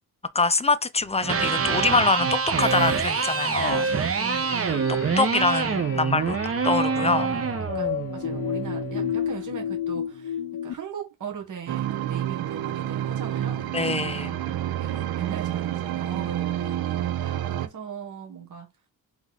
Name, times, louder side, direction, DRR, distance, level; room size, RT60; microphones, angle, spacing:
voice 1, 0.3-3.9 4.7-4.8 5.2-7.3 13.7-14.4, left 4 dB, 20° left, 0.4 m, -24 dB
Electric guitar, 1.1-9.2, right 5 dB, 40° right, 0.9 m, -26 dB
sound 1, 2.6-10.7, left 9 dB, 60° left, 0.6 m, -33 dB
voice 2, 3.8-5.0 6.9-14.1 14.8-18.7, right 7 dB, 55° right, 1.3 m, -39 dB
sound 2, 11.7-17.7, right 12 dB, 85° right, 0.6 m, -29 dB
3.7 x 3.0 x 3.8 m
cardioid pair, 85°, 36 cm